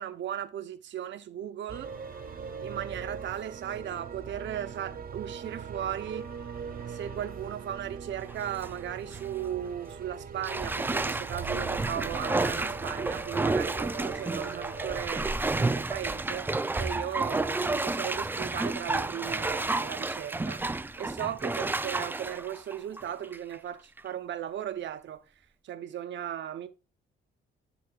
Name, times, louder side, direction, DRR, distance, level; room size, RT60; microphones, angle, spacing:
voice 1, 0.0-1.9 2.6-6.3 6.9-25.2 25.6-26.7, right 10 dB, 60° right, 0.9 m, -37 dB
sound 1, 1.7-15.1, right 6 dB, 45° right, 1.1 m, -41 dB
Bathtub (filling or washing), 8.3-8.7 9.1-9.2 10.4-23.6 24.0-24.1, right 2 dB, 10° right, 0.4 m, -31 dB
11.0 x 4.1 x 2.4 m
supercardioid pair, 75°, 21 cm